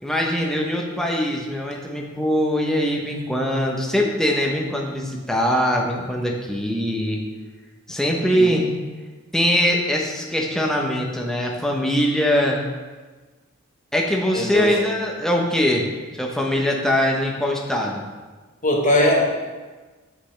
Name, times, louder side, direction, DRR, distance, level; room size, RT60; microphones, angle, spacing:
voice 1, 0.0-7.2 7.9-8.7 9.3-12.6 13.9-15.8 16.2-18.0, equal, ahead, -1 dB, 0.9 m, -22 dB
voice 2, 14.3-14.7 18.6-19.3, left 1 dB, 35° left, -1 dB, 1.4 m, -19 dB
8.8 x 7.7 x 3.4 m, 1.3 s
head